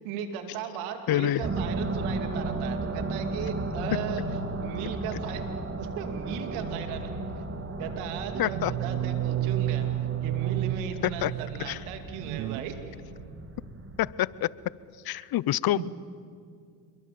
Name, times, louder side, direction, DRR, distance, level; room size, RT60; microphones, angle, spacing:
voice 1, 0.0-5.4 5.8-7.1 7.8-12.8 15.2-15.3 15.7-15.9, right 8 dB, 85° right, 7 dB, 2.6 m, -37 dB
voice 2, 1.1-1.4 3.9-4.0 8.4-8.7 11.0-11.3 11.7-11.8 14.0-14.5 15.0-15.8, left 14 dB, 50° left, 21 dB, 0.7 m, -26 dB
sound 1, 1.4-14.1, right 2 dB, 25° right, 2.5 m, -35 dB
sound 2, 6.3-7.1 8.1-11.8 12.2-12.6, right 13 dB, 45° right, 0.6 m, -31 dB
27.5 x 22.5 x 7.7 m, 2.3 s
supercardioid pair, 85°, 48 cm